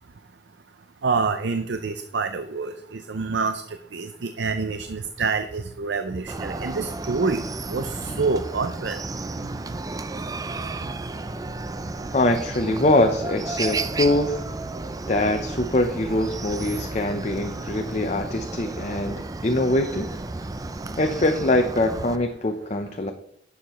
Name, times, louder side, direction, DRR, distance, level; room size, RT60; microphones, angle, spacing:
voice 1, 1.0-3.6 3.9-7.4 7.7-9.0, right 4 dB, 80° right, 9 dB, 0.6 m, -27 dB
Chicken rooster, 6.3-22.2, right 3 dB, 20° right, 0.4 m, -33 dB
voice 2, 12.1-14.4 15.1-20.1 21.0-23.1, left 1 dB, 40° left, 4 dB, 0.7 m, -23 dB
11.0 x 7.3 x 3.1 m, 0.76 s
head